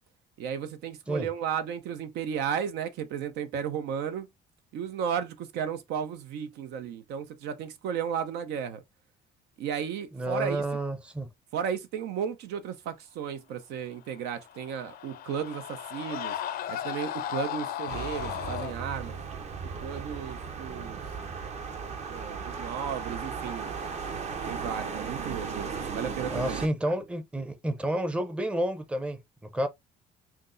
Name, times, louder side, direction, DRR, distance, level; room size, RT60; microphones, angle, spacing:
voice 1, 0.4-4.3 4.7-8.8 9.6-10.6 11.5-16.4 16.7-19.2 19.8-21.0 22.1-23.7 24.4-26.6, right 8 dB, 85° right, 0.7 m, -34 dB
voice 2, 10.1-11.3 26.3-29.7, right 1 dB, 5° right, 0.6 m, -30 dB
Screaming, 14.3-18.7, left 10 dB, 60° left, 0.5 m, -35 dB
sound 1, 17.9-26.7, right 5 dB, 40° right, 0.7 m, -36 dB
5.8 x 2.0 x 2.6 m
cardioid pair, 110°, 17 cm